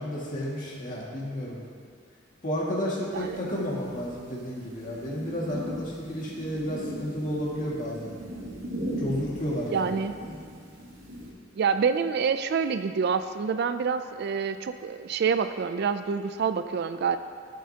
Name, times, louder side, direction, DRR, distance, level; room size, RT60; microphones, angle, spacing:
voice 1, 0.0-1.6 2.4-8.1 9.0-9.9 10.3-10.4, equal, 40° left, -5 dB, 2.0 m, -32 dB
sound 1, 3.1-11.3, equal, 80° right, 2.6 m, -39 dB
voice 2, 9.7-10.1 11.6-17.2, right 6 dB, 55° right, 10 dB, 0.4 m, -27 dB
15.0 x 7.5 x 2.9 m, 2.1 s
head